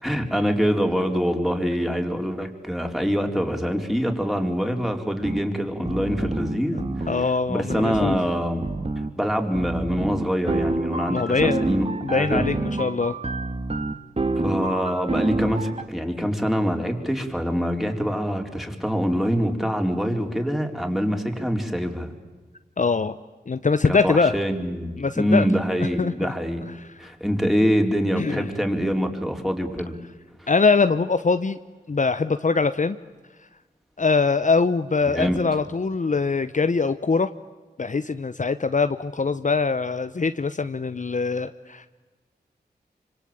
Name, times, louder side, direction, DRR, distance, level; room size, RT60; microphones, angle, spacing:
voice 1, 0.0-6.8 7.5-8.7 9.2-12.4 14.4-22.1 23.8-26.6 27.0-29.9 30.4-30.5 35.0-35.4, equal, ahead, 3 dB, 4.4 m, -25 dB
sound 1, 5.2-5.4 5.9-7.3 7.7-8.2 8.6-9.1 9.5-15.8, right 2 dB, 35° right, 2.0 m, -27 dB
voice 2, 6.7-8.2 11.1-11.7 12.0-13.2 22.8-23.2 23.5-24.4 25.0-25.4 26.0-26.3 28.2-28.5 30.5-31.6 31.9-33.0 34.0-37.3 37.8-41.9, left 4 dB, 45° left, 11 dB, 0.9 m, -23 dB
26.0 x 25.5 x 8.9 m, 1.3 s
cardioid pair, 50°, 17 cm